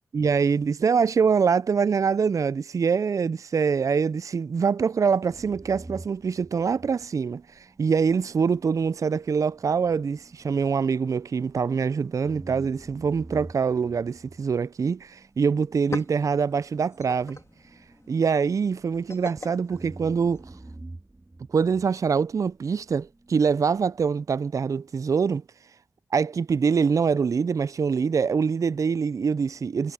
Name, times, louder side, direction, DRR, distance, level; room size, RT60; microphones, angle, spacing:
voice 1, 0.1-7.4 7.8-17.4 18.1-20.4 21.5-25.4 26.1-29.9, right 6 dB, 55° right, 0.3 m, -24 dB
sound 1, 5.3-11.8 12.2-19.3 19.7-24.1, right 2 dB, 30° right, 3.5 m, -47 dB
sound 2, 15.2-15.3 15.6-20.8, left 3 dB, 45° left, 2.3 m, -43 dB
cardioid pair, 45°, 7 cm